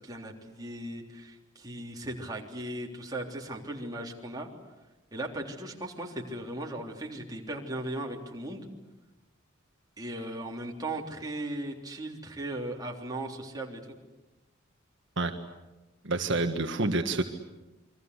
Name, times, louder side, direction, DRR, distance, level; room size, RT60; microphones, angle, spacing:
voice 1, 0.0-4.5 5.1-8.7 10.0-14.0, right 1 dB, 20° right, 0 dB, 3.5 m, -37 dB
voice 2, 16.0-17.2, right 2 dB, 60° right, 5 dB, 1.6 m, -28 dB
29.0 x 23.5 x 8.2 m, 1.1 s
head